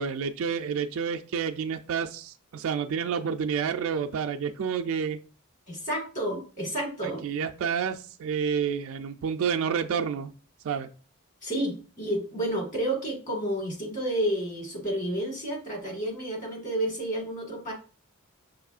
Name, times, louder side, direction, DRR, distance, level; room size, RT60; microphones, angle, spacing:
voice 1, 0.0-5.2 7.0-10.3 10.6-10.9, right 6 dB, 65° right, 5 dB, 0.3 m, -29 dB
voice 2, 5.7-7.2 11.4-17.7, right 1 dB, 35° left, -1 dB, 1.6 m, -30 dB
5.4 x 2.9 x 2.4 m, 0.36 s
head